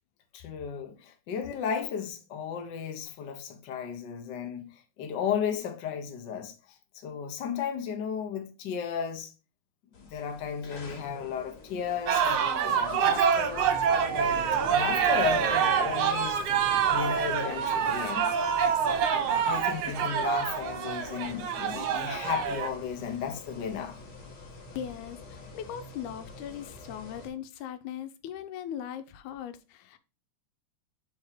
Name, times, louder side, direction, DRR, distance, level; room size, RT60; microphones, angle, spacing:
voice 1, 0.3-4.7 5.0-6.5 7.0-9.3 10.0-13.7 14.1-18.3 19.4-24.0, left 7 dB, 70° left, 1.0 m, -34 dB
sound 1, 9.9-27.3, left 3 dB, 50° left, 2.1 m, -44 dB
sound 2, 12.1-22.7, right 7 dB, 70° right, 1.7 m, -26 dB
voice 2, 24.8-30.0, left 9 dB, 90° left, 2.1 m, -39 dB
4.9 x 4.3 x 4.8 m
omnidirectional pair, 3.3 m